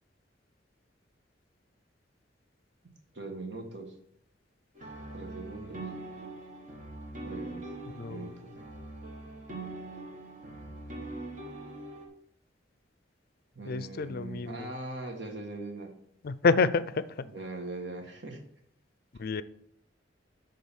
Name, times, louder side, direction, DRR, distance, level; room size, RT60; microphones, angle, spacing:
voice 1, 3.1-4.0 5.1-5.9 7.2-7.7 8.1-8.5 13.5-15.9 17.3-18.4, right 2 dB, 65° right, 3 dB, 1.7 m, -40 dB
sound 1, 4.8-12.0, right 2 dB, 45° right, 1.9 m, -42 dB
voice 2, 8.0-8.3 13.7-14.7 16.2-17.3 19.2-19.4, left 4 dB, 55° left, 16 dB, 0.4 m, -28 dB
9.7 x 3.8 x 7.2 m, 0.68 s
head